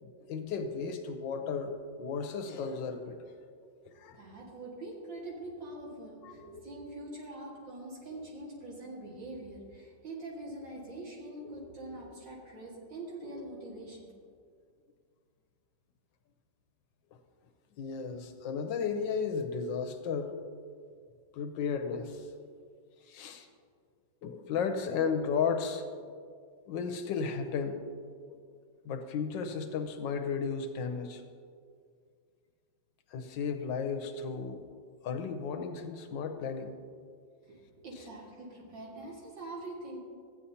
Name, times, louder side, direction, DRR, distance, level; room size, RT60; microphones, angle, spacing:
voice 1, 0.0-3.2 3.8-4.2 6.2-6.3 8.1-8.2 17.8-20.3 21.3-22.3 23.1-23.5 24.2-26.1 26.7-27.8 28.3-28.4 28.8-31.2 33.1-34.6 35.0-36.8, left 5 dB, 80° left, 7 dB, 1.4 m, -34 dB
voice 2, 4.1-14.1 37.4-40.0, right 2 dB, 80° right, -4 dB, 2.7 m, -44 dB
14.0 x 9.2 x 2.8 m, 2.1 s
omnidirectional pair, 2.0 m